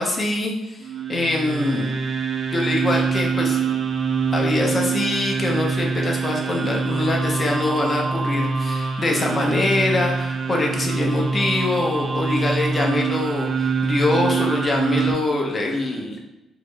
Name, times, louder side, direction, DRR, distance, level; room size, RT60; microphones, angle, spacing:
voice 1, 0.0-1.9 2.5-3.7 4.3-16.2, left 2 dB, 30° left, 0 dB, 0.8 m, -24 dB
sound 1, 0.8-15.1, right 5 dB, 45° right, 0.4 m, -24 dB
3.6 x 2.1 x 3.3 m, 0.98 s
cardioid pair, 90°, 0 cm